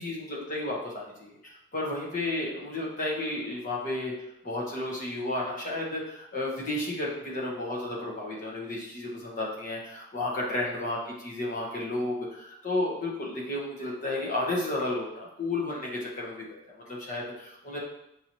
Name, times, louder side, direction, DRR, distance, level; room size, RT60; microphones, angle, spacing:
voice 1, 0.0-4.1 4.4-17.8, left 2 dB, 40° left, -4 dB, 1.0 m, -32 dB
5.8 x 2.7 x 3.0 m, 0.82 s
head